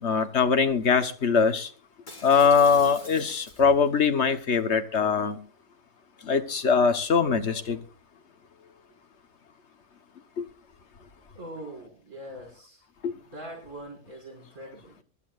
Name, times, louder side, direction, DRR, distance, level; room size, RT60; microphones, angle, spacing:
voice 1, 0.0-1.7 2.2-5.4 6.2-7.8 10.4-10.5 13.0-13.1, left 5 dB, 65° left, 1.6 m, -22 dB
Shatter, 2.1-3.9 4.3-4.6, left 2 dB, 40° left, 2.9 m, -46 dB
voice 2, 11.3-12.8 13.2-15.0, right 1 dB, 90° right, 6.6 m, -42 dB
24.0 x 12.5 x 2.5 m
omnidirectional pair, 1.3 m